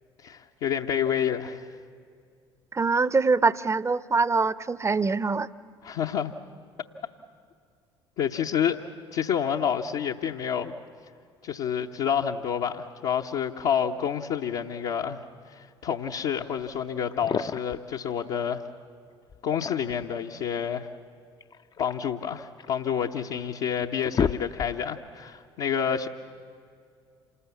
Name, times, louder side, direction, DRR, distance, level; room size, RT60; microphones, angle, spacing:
voice 1, 0.2-1.7 5.8-6.3 8.2-8.8 9.1-10.7 11.4-15.2 15.5-18.6 19.4-20.9 21.8-26.1, left 8 dB, 60° left, -1 dB, 1.0 m, -28 dB
voice 2, 2.7-5.5, right 4 dB, 20° right, 18 dB, 0.8 m, -24 dB
sound 1, 17.1-17.8 19.3-20.1 21.4-22.8 23.4-23.5 23.8-25.0, left 6 dB, 30° left, 0.6 m, -32 dB
27.5 x 19.5 x 8.3 m, 2.3 s
figure-of-eight pair, 55°, 14 cm